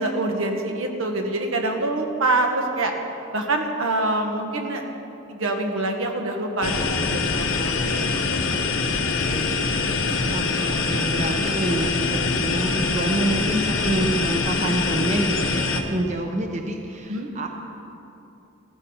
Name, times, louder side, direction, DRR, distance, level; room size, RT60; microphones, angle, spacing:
voice 1, 0.0-2.9 3.3-4.8 5.3-9.7 10.0-10.4 17.1-17.3, right 2 dB, 80° right, 3 dB, 1.5 m, -26 dB
sound 1, 6.6-15.8, left 4 dB, 85° left, 1.1 m, -24 dB
voice 2, 7.5-8.4 10.3-17.5, right 1 dB, 35° right, 3 dB, 0.8 m, -27 dB
15.5 x 14.5 x 4.4 m, 2.9 s
head